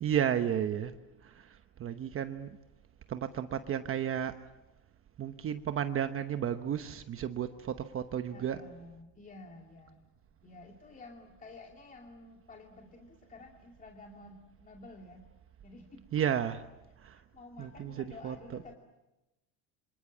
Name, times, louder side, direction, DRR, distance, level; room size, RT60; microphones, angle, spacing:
voice 1, 0.0-0.9 1.2-2.6 3.1-4.4 5.2-8.6 16.1-16.6 17.0-17.2 17.6-18.6, right 9 dB, 30° right, 9 dB, 1.0 m, -33 dB
voice 2, 8.3-10.1 10.4-15.3 15.6-16.0 17.3-18.8, left 2 dB, 20° left, 1 dB, 2.5 m, -51 dB
27.5 x 26.0 x 7.3 m, 1.0 s
cardioid pair, 130°, 40 cm